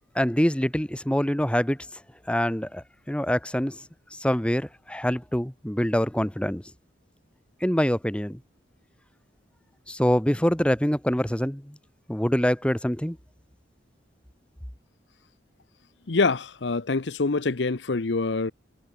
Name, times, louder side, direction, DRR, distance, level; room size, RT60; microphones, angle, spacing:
voice 1, 0.1-1.8 2.3-3.8 4.1-6.6 7.6-8.4 9.9-11.8 12.1-13.2, equal, 5° left, 1.3 m, -25 dB
voice 2, 16.1-18.5, left 3 dB, 70° left, 0.8 m, -25 dB
head